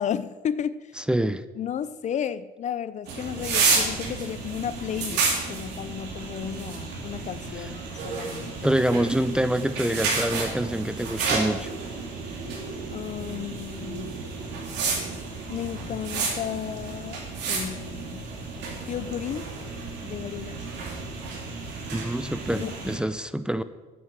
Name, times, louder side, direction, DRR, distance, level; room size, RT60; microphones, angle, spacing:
voice 1, 0.0-0.9 1.6-8.5 12.9-14.2 15.5-18.2 18.9-19.5 20.0-20.7 22.5-22.7, left 9 dB, 45° left, 16 dB, 0.5 m, -33 dB
voice 2, 1.0-1.4 7.6-7.7 8.6-11.7 21.9-23.6, right 1 dB, 5° right, 13 dB, 0.5 m, -26 dB
sound 1, 3.1-23.0, right 4 dB, 85° right, 3.0 m, -31 dB
9.6 x 8.2 x 7.4 m, 1.3 s
cardioid pair, 110°, 17 cm